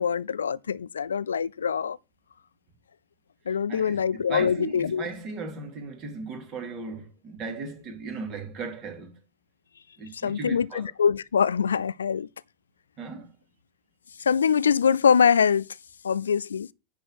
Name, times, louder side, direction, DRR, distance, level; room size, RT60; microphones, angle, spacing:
voice 1, 0.0-2.0 3.5-5.0 10.2-12.3 14.2-15.7 16.0-16.7, left 7 dB, 70° left, 0.4 m, -23 dB
voice 2, 3.5-4.0 4.3-9.1 10.0-10.9 13.0-13.3, right 4 dB, 35° right, 2.9 m, -37 dB
10.0 x 4.1 x 6.3 m
figure-of-eight pair, 90°, 0 cm